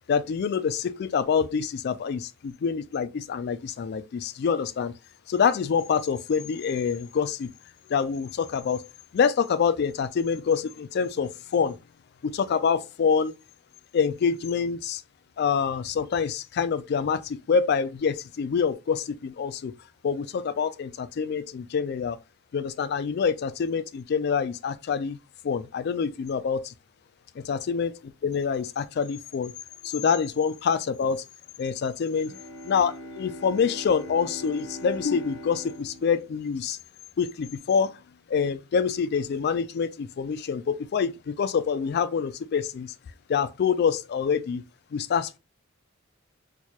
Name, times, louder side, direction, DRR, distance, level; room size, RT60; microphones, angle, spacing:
voice 1, 0.1-4.9 5.3-7.5 7.9-8.8 9.1-11.8 12.2-13.3 13.9-15.0 15.4-19.7 20.0-22.2 22.5-25.2 25.4-26.7 27.4-27.9 28.2-29.5 29.8-31.2 31.6-32.4 32.6-36.8 37.2-37.9 38.3-42.9 43.3-44.6 44.9-45.4, left 6 dB, 50° left, 0.3 m, -26 dB
Bowed string instrument, 32.2-37.2, equal, 85° left, 0.9 m, -42 dB
4.5 x 2.3 x 2.8 m
head